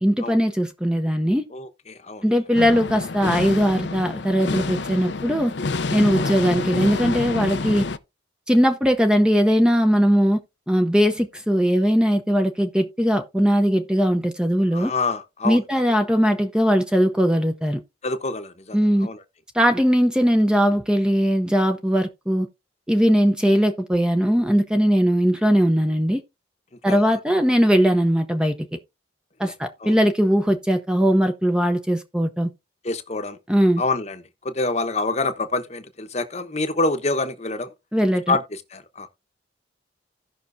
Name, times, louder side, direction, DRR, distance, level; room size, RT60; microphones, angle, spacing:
voice 1, 0.0-1.4 2.2-5.5 5.9-7.8 8.5-10.4 10.7-14.9 15.4-17.8 18.7-19.1 19.5-22.5 22.9-26.2 26.8-28.5 29.4-32.5 33.5-33.8 37.9-38.4, equal, 5° right, 0.7 m, -19 dB
voice 2, 1.5-2.2 6.2-6.3 14.7-15.6 18.0-19.2 26.9-27.0 29.4-29.5 29.8-29.9 32.8-33.4 33.8-37.7 38.3-39.1, left 3 dB, 35° left, 1.0 m, -27 dB
sound 1, 2.5-8.0, left 3 dB, 65° left, 0.6 m, -28 dB
16.5 x 5.8 x 2.7 m
head